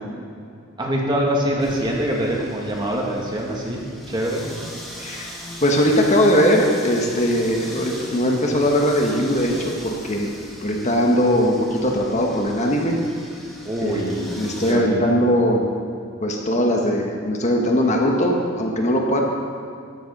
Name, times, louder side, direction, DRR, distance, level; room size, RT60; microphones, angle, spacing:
voice 1, 0.8-4.4 13.7-15.2, equal, 20° right, -2 dB, 2.0 m, -24 dB
sound 1, 1.6-14.7, equal, ahead, 1.7 m, -39 dB
voice 2, 5.0-10.3 10.6-13.0 13.8-15.7 16.2-19.2, equal, 35° left, 1 dB, 1.3 m, -20 dB
13.5 x 11.0 x 5.3 m, 2.4 s
head